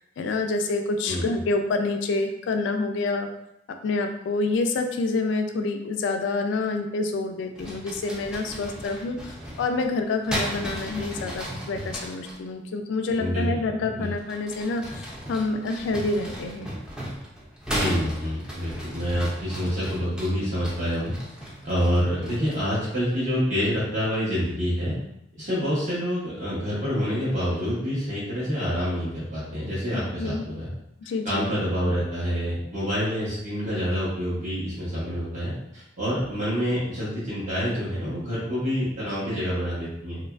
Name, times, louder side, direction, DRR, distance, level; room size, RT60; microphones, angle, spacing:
voice 1, 0.2-3.3 3.8-9.3 9.6-16.7 29.9-30.4 31.0-31.5, left 3 dB, 75° left, 5 dB, 0.3 m, -27 dB
voice 2, 1.0-1.4 13.2-14.1 17.7-21.1 21.6-25.0 25.4-30.7 31.2-40.2, equal, 40° right, -9 dB, 0.8 m, -27 dB
sound 1, 7.5-12.4 14.1-22.7, equal, 5° right, 0.4 m, -36 dB
2.8 x 2.3 x 2.3 m, 0.80 s
head